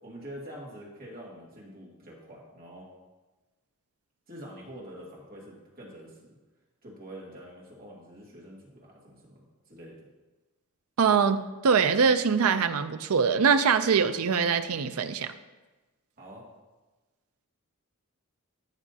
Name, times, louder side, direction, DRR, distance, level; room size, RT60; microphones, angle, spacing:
voice 1, 0.0-2.9 4.3-6.2 6.8-10.1 16.2-16.4, equal, 40° right, -4 dB, 2.3 m, -46 dB
voice 2, 11.0-15.3, right 6 dB, 70° right, 11 dB, 0.5 m, -23 dB
13.5 x 6.2 x 2.8 m, 1.2 s
head